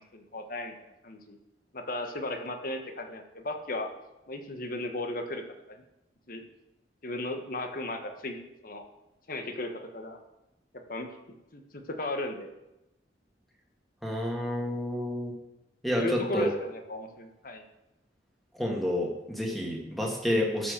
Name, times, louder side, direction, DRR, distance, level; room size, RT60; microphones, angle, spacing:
voice 1, 0.0-1.4 1.7-3.9 4.3-5.4 5.7-5.8 6.3-6.4 7.0-8.4 8.6-8.9 9.3-10.2 10.9-11.1 11.5-12.5 15.9-17.6, left 2 dB, 50° left, 5 dB, 1.3 m, -35 dB
voice 2, 14.0-15.3 15.8-16.0 16.3-16.5 18.6-20.7, left 1 dB, ahead, -2 dB, 1.9 m, -29 dB
12.0 x 5.8 x 6.7 m, 0.92 s
head